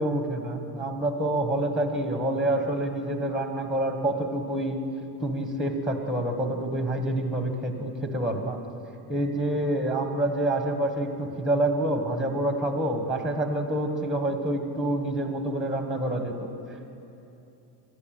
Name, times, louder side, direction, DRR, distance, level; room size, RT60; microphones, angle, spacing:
voice 1, 0.0-4.8 5.2-8.6 9.1-16.5, right 1 dB, ahead, 5 dB, 1.6 m, -27 dB
27.0 x 11.5 x 9.1 m, 2.9 s
cardioid pair, 150°, 49 cm